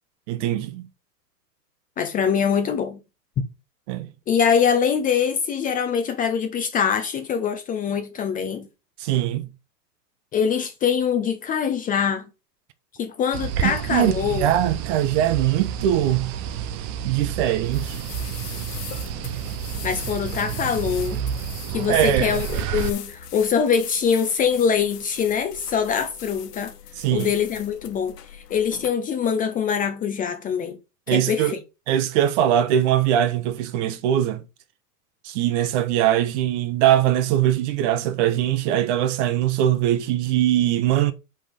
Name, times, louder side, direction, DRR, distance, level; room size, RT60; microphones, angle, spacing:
voice 1, 0.3-0.9 3.9-4.1 9.0-9.5 13.6-16.3 17.0-18.0 21.9-22.3 27.0-27.3 31.1-31.6 31.9-34.4 35.2-41.1, right 11 dB, 45° right, 1.0 m, -21 dB
voice 2, 2.0-3.0 4.3-8.7 10.3-12.3 13.0-14.5 19.8-21.2 21.7-26.7 27.1-30.8 31.1-31.6, left 7 dB, 15° left, 0.6 m, -23 dB
sound 1, 13.3-22.9, right 9 dB, 25° right, 0.4 m, -30 dB
sound 2, 17.6-28.9, left 9 dB, 70° left, 1.6 m, -40 dB
5.6 x 5.1 x 5.2 m
hypercardioid pair, 125°, 50 cm